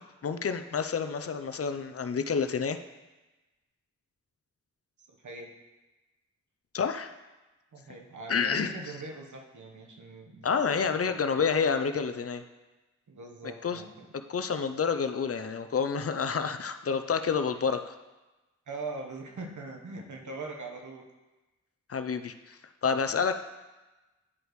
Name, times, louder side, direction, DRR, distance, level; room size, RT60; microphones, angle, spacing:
voice 1, 0.2-2.8 6.7-7.1 8.3-8.7 10.4-12.4 13.6-13.8 14.3-18.0 21.9-22.6 22.8-23.3, left 6 dB, 50° left, 8 dB, 0.5 m, -29 dB
voice 2, 5.2-5.5 7.7-11.1 13.1-14.1 18.7-21.1, right 3 dB, 70° right, 1 dB, 1.1 m, -41 dB
9.8 x 5.0 x 3.1 m, 1.1 s
cardioid pair, 45°, 31 cm